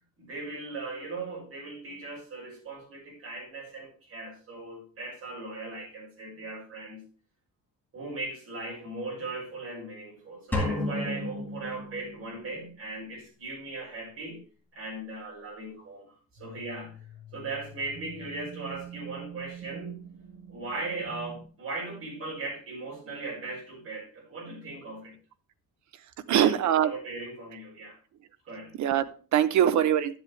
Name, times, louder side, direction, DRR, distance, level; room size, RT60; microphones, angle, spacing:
voice 1, 0.2-7.0 7.9-14.4 14.7-16.9 17.3-20.0 20.5-25.1 26.3-28.0 28.4-28.7, right 3 dB, 40° right, -2 dB, 6.2 m, -38 dB
sound 1, 10.5-12.6, left 2 dB, 5° left, 2.0 m, -32 dB
sound 2, 16.4-21.5, right 4 dB, 80° right, 1.8 m, -45 dB
voice 2, 26.3-26.9 28.8-30.2, right 10 dB, 55° right, 12 dB, 0.8 m, -23 dB
12.5 x 8.0 x 3.4 m, 0.38 s
cardioid pair, 175°, 34 cm